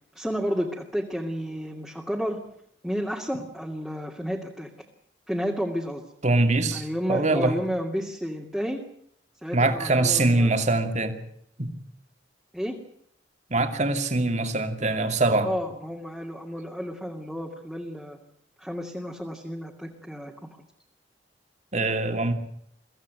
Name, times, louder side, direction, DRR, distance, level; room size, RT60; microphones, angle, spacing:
voice 1, 0.1-2.4 2.8-4.7 5.3-6.0 6.7-8.8 9.4-10.7 12.5-12.8 15.4-18.2 18.6-20.3, equal, ahead, 2.4 m, -31 dB
voice 2, 6.2-7.6 9.5-11.2 11.6-11.7 13.5-15.5 21.7-22.3, right 2 dB, 40° right, 2.6 m, -23 dB
23.5 x 16.0 x 9.3 m
head